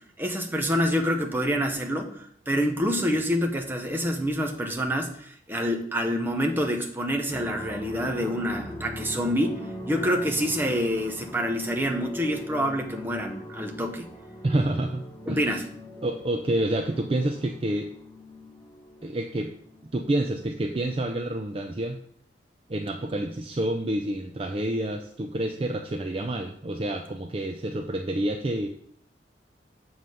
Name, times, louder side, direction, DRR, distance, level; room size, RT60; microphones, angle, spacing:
voice 1, 0.2-14.1 15.3-15.6, equal, 10° right, 3 dB, 0.8 m, -27 dB
sound 1, 7.3-20.1, left 1 dB, 15° left, 0.9 m, -41 dB
voice 2, 14.4-15.6 16.0-17.9 19.0-19.5 19.9-22.0 22.7-28.7, right 1 dB, 30° right, 4 dB, 0.4 m, -28 dB
7.5 x 3.9 x 6.4 m, 0.64 s
head